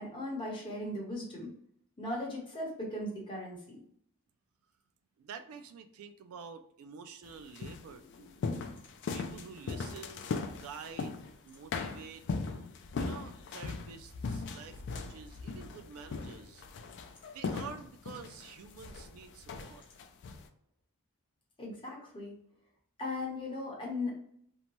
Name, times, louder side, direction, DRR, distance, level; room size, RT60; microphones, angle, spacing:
voice 1, 0.0-1.5 2.0-3.8 21.6-22.3 23.0-24.1, left 1 dB, 25° left, -3 dB, 1.0 m, -38 dB
voice 2, 5.2-8.4 9.1-11.1 11.4-12.2 13.0-16.6 17.3-19.8, right 6 dB, 65° right, 7 dB, 0.3 m, -48 dB
sound 1, 7.2-11.4 11.7-20.5, left 4 dB, 55° left, 0.3 m, -39 dB
2.7 x 2.2 x 3.0 m, 0.66 s
head